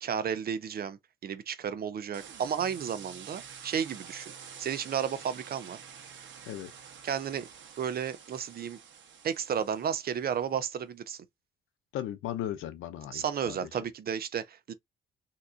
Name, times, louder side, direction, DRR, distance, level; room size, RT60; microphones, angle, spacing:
voice 1, 0.0-4.3 4.6-5.8 7.0-7.5 7.8-8.8 9.2-11.2 13.1-14.7, right 8 dB, 50° right, 0.7 m, -33 dB
sound 1, 2.1-10.3, right 7 dB, 70° right, 1.1 m, -48 dB
voice 2, 11.9-13.7, left 11 dB, 85° left, 0.6 m, -37 dB
3.5 x 2.9 x 2.5 m
cardioid pair, 90°, 20 cm